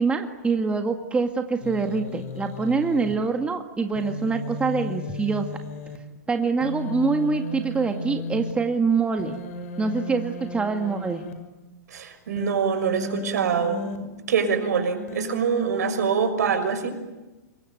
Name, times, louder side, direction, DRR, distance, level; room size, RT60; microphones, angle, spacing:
voice 1, 0.0-5.5 6.3-9.4 9.8-11.2, right 4 dB, 10° right, 5 dB, 1.9 m, -25 dB
Human voice, 1.6-3.1 4.0-6.0 6.6-8.5 9.2-11.3 12.4-14.0 15.1-16.3, left 3 dB, 55° left, 6.0 m, -34 dB
voice 2, 11.9-13.9 14.3-17.0, right 6 dB, 70° right, 8 dB, 6.1 m, -24 dB
27.5 x 23.0 x 9.3 m, 1.1 s
hypercardioid pair, 125°, 9 cm